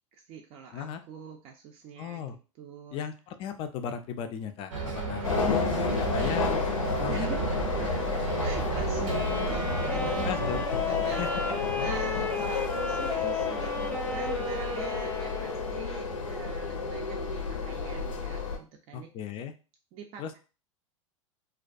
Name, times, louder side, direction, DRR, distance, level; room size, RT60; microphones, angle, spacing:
voice 1, 0.1-2.2 2.6-3.0 5.2-6.0 7.1-7.4 8.4-10.2 10.8-19.1 19.9-20.4, right 7 dB, 40° right, 2 dB, 0.4 m, -43 dB
voice 2, 2.0-2.4 2.9-6.6 7.0-7.3 10.2-10.6 11.2-11.3 18.9-19.5 20.2-20.4, left 8 dB, 35° left, 8 dB, 0.4 m, -36 dB
Bus, 4.7-10.6, right 7 dB, 75° right, 0.7 m, -33 dB
sound 1, 5.2-18.6, left 4 dB, 85° left, 0.5 m, -31 dB
Wind instrument woodwind instrument, 9.0-16.0, left 4 dB, 10° left, 0.7 m, -34 dB
2.3 x 2.2 x 2.5 m, 0.33 s
hypercardioid pair, 95°, 16 cm